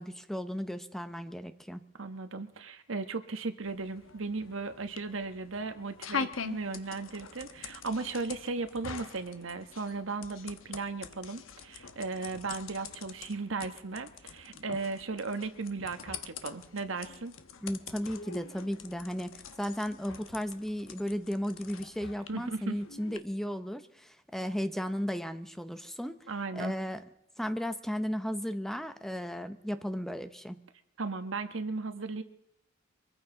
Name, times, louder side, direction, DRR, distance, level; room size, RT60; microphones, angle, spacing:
voice 1, 0.0-1.8 17.6-19.3 19.6-26.2 26.5-27.0 27.4-30.6, equal, ahead, 9 dB, 0.7 m, -35 dB
voice 2, 2.0-17.3 22.3-22.8 26.3-26.7 31.0-32.2, right 3 dB, 75° right, 8 dB, 1.2 m, -36 dB
sound 1, 3.6-23.2, left 6 dB, 90° left, 1.0 m, -44 dB
24.0 x 14.5 x 3.9 m, 0.83 s
head